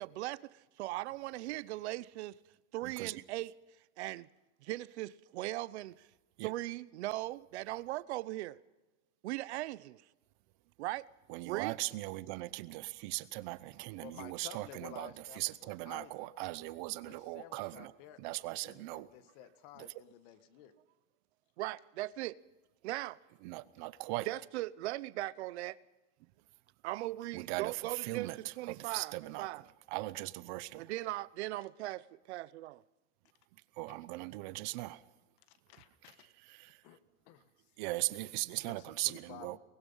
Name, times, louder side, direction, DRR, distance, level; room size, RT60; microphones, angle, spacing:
voice 1, 0.0-2.4 2.7-3.5 4.0-4.3 4.6-6.1 6.4-8.6 9.2-10.0 10.8-11.1 11.5-11.8 21.6-22.4 22.8-23.2 24.3-25.8 26.8-29.6 30.8-32.8, right 17 dB, 85° right, 0.8 m, -39 dB
voice 2, 2.8-3.2 6.4-6.5 11.3-15.1 15.4-17.9 18.2-19.1 19.8-19.9 23.4-24.3 27.3-29.5 29.9-30.9 33.8-35.0 36.4-36.8 37.8-39.6, right 20 dB, 45° right, 0.8 m, -39 dB
voice 3, 14.0-16.3 17.0-20.7 35.4-36.3 36.8-37.0 37.2-37.7 38.6-39.6, left 10 dB, 45° left, 1.5 m, -53 dB
23.5 x 20.0 x 5.6 m
supercardioid pair, 170°, 32 cm